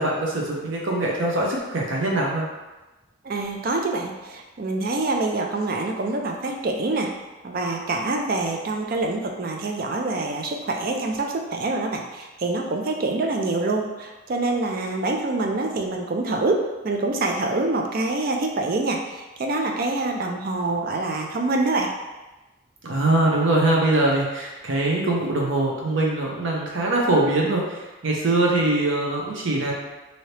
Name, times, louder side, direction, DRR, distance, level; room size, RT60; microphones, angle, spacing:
voice 1, 0.0-2.5 22.8-29.7, right 2 dB, 70° right, -2 dB, 0.7 m, -22 dB
voice 2, 3.2-7.1 7.4-21.9, right 2 dB, 45° right, 2 dB, 0.4 m, -26 dB
2.8 x 2.8 x 3.2 m, 1.1 s
head